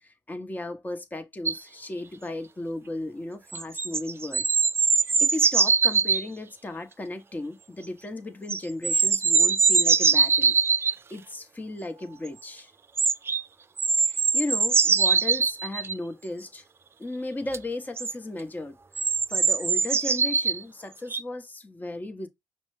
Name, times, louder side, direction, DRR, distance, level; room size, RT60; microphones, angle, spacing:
voice 1, 0.0-4.4 4.9-10.5 11.1-12.7 14.0-16.6 17.0-18.8 19.3-22.3, left 2 dB, 20° left, 1.0 m, -35 dB
sound 1, 1.5-1.6 3.5-6.2 8.5-10.9 13.0-13.4 13.8-15.9 17.5-17.6 18.0-18.1 19.0-20.6 21.1-21.2, right 5 dB, 30° right, 0.3 m, -22 dB
5.3 x 2.2 x 3.1 m
supercardioid pair, 65°, 8 cm